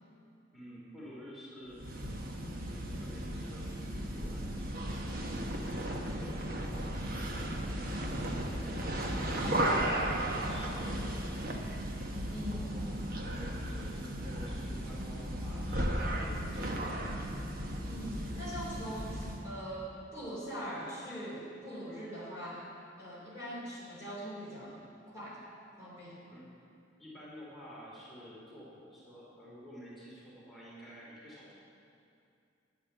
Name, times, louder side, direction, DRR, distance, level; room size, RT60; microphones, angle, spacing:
voice 1, 0.5-2.4 2.6-5.1 5.6-11.5 12.3-13.1 13.5-17.2 26.3-26.5 27.0-31.5, equal, ahead, -8 dB, 2.8 m, -51 dB
sound 1, 1.7-19.5, right 1 dB, 50° right, 1.1 m, -35 dB
voice 2, 7.9-8.3 9.3-9.7 12.3-12.7 17.9-22.6 23.0-25.4 25.8-26.2, equal, 15° right, -7 dB, 2.7 m, -42 dB
10.5 x 9.7 x 7.6 m, 2.6 s
head